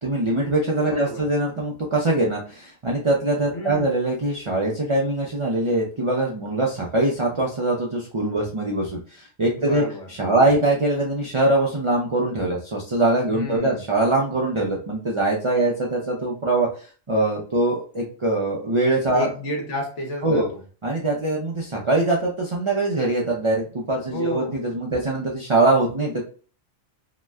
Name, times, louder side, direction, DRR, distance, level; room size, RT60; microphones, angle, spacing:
voice 1, 0.0-9.8 10.2-16.7 17.1-19.3 20.2-20.5 20.8-26.2, right 2 dB, 45° right, -3 dB, 0.4 m, -22 dB
voice 2, 0.9-1.3 3.5-3.9 9.6-10.5 13.3-13.9 19.1-20.6 24.1-24.6, equal, 65° left, 1 dB, 1.2 m, -31 dB
2.8 x 2.1 x 3.5 m, 0.38 s
omnidirectional pair, 1.3 m